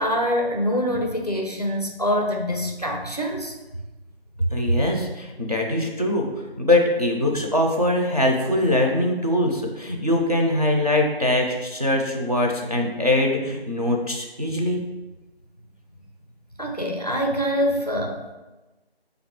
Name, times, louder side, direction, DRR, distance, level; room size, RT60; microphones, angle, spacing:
voice 1, 0.0-3.6 16.6-18.3, equal, 40° left, 2 dB, 0.4 m, -25 dB
voice 2, 4.5-6.3 6.6-14.8, left 1 dB, 40° right, 0 dB, 0.4 m, -22 dB
5.1 x 2.4 x 3.5 m, 1.1 s
figure-of-eight pair, 170°, 31 cm